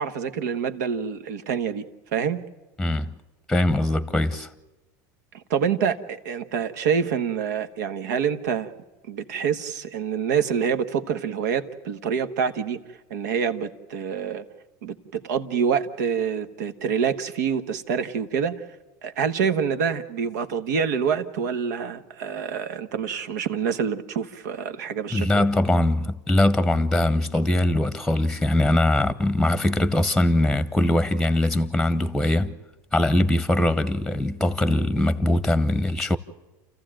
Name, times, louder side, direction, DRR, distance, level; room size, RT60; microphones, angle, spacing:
voice 1, 0.0-1.8 2.1-2.4 5.5-8.7 9.1-12.8 13.1-14.4 14.8-18.5 19.0-25.5, right 7 dB, 85° right, 1.5 m, -26 dB
voice 2, 2.8-3.1 3.5-4.5 25.1-32.5 32.9-36.2, left 1 dB, 5° left, 0.9 m, -21 dB
29.5 x 14.5 x 9.0 m
supercardioid pair, 125°, 9 cm